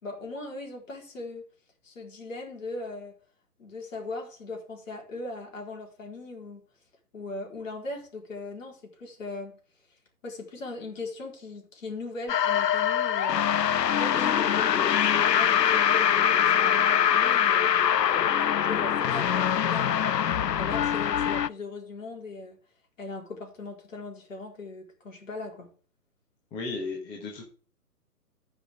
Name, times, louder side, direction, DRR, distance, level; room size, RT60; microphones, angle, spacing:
voice 1, 0.0-1.5 1.8-3.2 3.6-6.6 7.1-9.6 10.2-13.5 13.9-17.8 18.4-22.6 23.0-25.7, left 3 dB, 50° left, 4.1 m, -39 dB
sound 1, 12.3-21.5, left 9 dB, 85° left, 0.6 m, -23 dB
voice 2, 26.5-27.4, left 3 dB, 10° left, 1.2 m, -34 dB
14.5 x 5.6 x 3.6 m
figure-of-eight pair, 135°, 48 cm